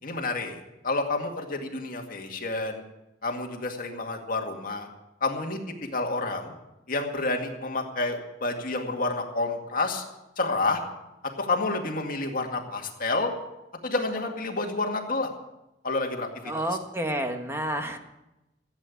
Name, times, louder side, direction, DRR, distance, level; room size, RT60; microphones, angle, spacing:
voice 1, 0.0-2.8 3.2-4.9 5.2-5.6 5.9-6.5 6.9-10.0 10.4-10.8 11.4-13.3 13.8-15.3 15.8-16.3, left 3 dB, 55° left, 2 dB, 2.2 m, -29 dB
voice 2, 16.5-18.0, right 1 dB, 15° right, 5 dB, 1.5 m, -29 dB
15.5 x 8.8 x 8.4 m, 0.95 s
head